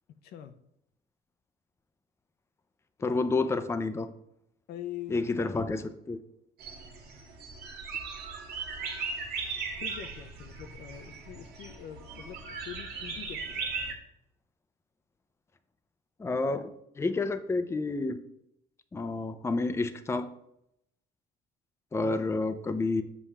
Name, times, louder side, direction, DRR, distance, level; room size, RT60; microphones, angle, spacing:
voice 1, 0.1-0.5 4.7-5.3 8.6-8.9 9.8-13.7, left 10 dB, 70° left, 0.6 m, -44 dB
voice 2, 3.0-4.1 5.1-6.2 16.2-18.2 18.9-20.3 21.9-23.0, left 3 dB, 15° left, 0.5 m, -29 dB
sound 1, 6.6-13.9, right 4 dB, 75° right, 1.6 m, -38 dB
7.3 x 7.0 x 3.3 m
cardioid pair, 110°, 17 cm